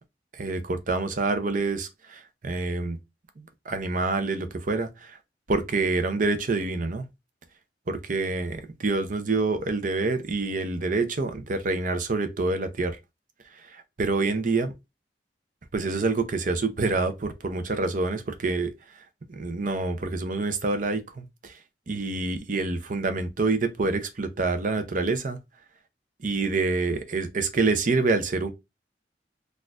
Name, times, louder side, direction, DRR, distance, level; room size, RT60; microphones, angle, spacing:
voice 1, 0.3-3.0 3.4-5.2 5.5-7.0 7.9-13.0 13.7-14.7 15.7-18.7 19.3-21.6 21.9-25.4 26.2-28.5, right 3 dB, 50° right, 0.6 m, -27 dB
4.2 x 2.4 x 2.4 m
head